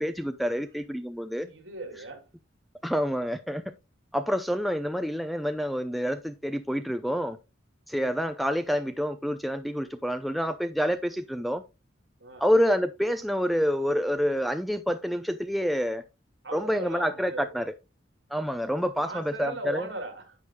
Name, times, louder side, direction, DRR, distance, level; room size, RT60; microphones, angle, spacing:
voice 1, 0.0-1.5 2.8-3.6 4.1-7.4 7.9-11.6 12.4-16.0 16.5-17.7 18.3-19.9, equal, ahead, 0.6 m, -27 dB
voice 2, 1.4-2.2 12.2-12.4 16.4-17.5 19.0-20.4, right 2 dB, 70° right, 3.2 m, -38 dB
10.5 x 8.2 x 2.3 m
head